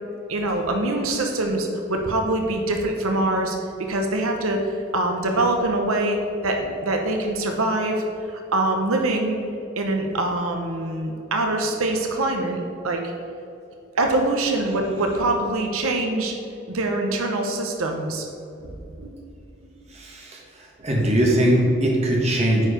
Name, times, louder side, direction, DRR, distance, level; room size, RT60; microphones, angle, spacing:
voice 1, 0.3-3.6 3.9-4.6 4.9-6.2 6.4-8.0 8.3-9.4 9.8-13.1 14.0-16.3 16.7-18.3 19.0-19.1, right 2 dB, 85° right, 3 dB, 0.9 m, -24 dB
voice 2, 19.9-22.7, right 1 dB, 30° right, -2 dB, 1.5 m, -21 dB
9.5 x 4.7 x 5.0 m, 2.7 s
head